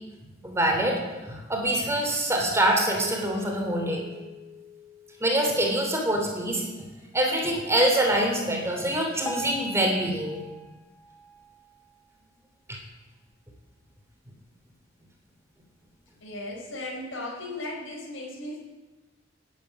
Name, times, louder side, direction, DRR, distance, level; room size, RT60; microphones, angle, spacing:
voice 1, 0.4-4.0 5.2-10.4 12.7-12.8, right 1 dB, 15° right, 1 dB, 3.3 m, -25 dB
Mallet percussion, 3.0-5.9, left 3 dB, 75° right, 2.1 m, -43 dB
Piano, 9.2-12.3 12.9-13.0 13.3-13.4 14.1-14.2 14.8-14.9, right 2 dB, 15° left, 1.4 m, -41 dB
voice 2, 16.2-18.6, left 2 dB, 80° left, -3 dB, 4.4 m, -36 dB
19.0 x 9.2 x 8.3 m, 1.2 s
head